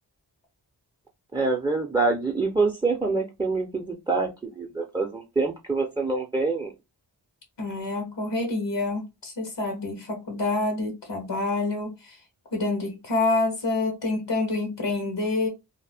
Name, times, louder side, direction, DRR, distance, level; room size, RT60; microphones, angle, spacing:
voice 1, 1.3-6.7, right 3 dB, 10° right, 0.5 m, -26 dB
voice 2, 7.6-12.2 12.5-15.5, left 2 dB, 90° left, 1.1 m, -27 dB
2.7 x 2.1 x 3.3 m
wide cardioid pair, 65°, 42 cm